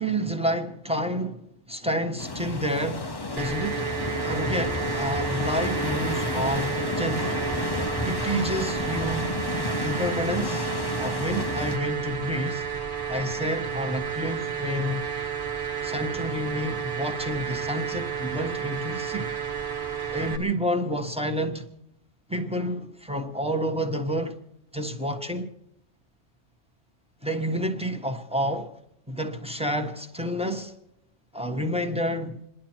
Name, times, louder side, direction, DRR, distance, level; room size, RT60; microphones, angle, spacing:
voice 1, 0.0-3.9 4.2-7.4 8.0-9.3 9.8-10.7 11.0-12.6 13.1-15.0 15.8-19.3 20.1-21.6 22.3-24.4 24.7-25.5 27.2-28.7 29.1-30.7 31.3-32.4, equal, 5° right, 1.3 m, -29 dB
sound 1, 2.2-11.8, left 2 dB, 25° left, 0.8 m, -31 dB
sound 2, 3.4-20.4, right 7 dB, 45° right, 1.5 m, -32 dB
27.5 x 11.5 x 4.5 m
omnidirectional pair, 1.2 m